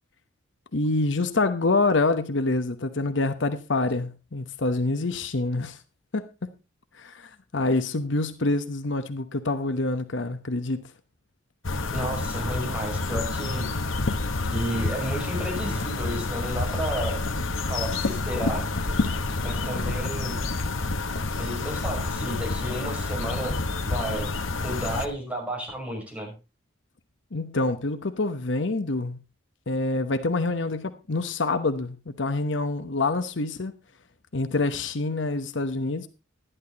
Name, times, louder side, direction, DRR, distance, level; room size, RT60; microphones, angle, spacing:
voice 1, 0.7-5.8 6.1-6.5 6.9-10.9 27.3-29.2 29.7-33.7 34.3-36.1, left 2 dB, 65° left, 1.0 m, -26 dB
sound 1, 11.6-25.1, left 3 dB, 85° left, 1.3 m, -28 dB
voice 2, 11.9-13.7 14.5-17.2 17.7-18.7 19.4-20.5 21.4-23.6 23.8-24.3 24.6-26.3, right 1 dB, 5° right, 5.8 m, -32 dB
12.0 x 11.0 x 4.0 m
head